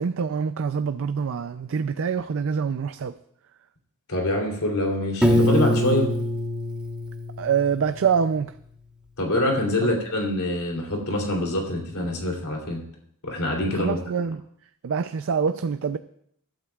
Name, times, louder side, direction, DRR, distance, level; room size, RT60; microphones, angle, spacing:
voice 1, 0.0-3.1 7.4-8.5 9.8-9.9 13.7-14.4 14.8-16.0, right 6 dB, 60° right, 10 dB, 0.4 m, -25 dB
voice 2, 4.1-6.1 9.2-12.8 13.2-14.0, left 1 dB, 75° left, 0 dB, 3.2 m, -25 dB
Piano, 5.2-8.1, left 1 dB, 5° right, 1.2 m, -24 dB
23.0 x 11.5 x 2.4 m, 0.67 s
head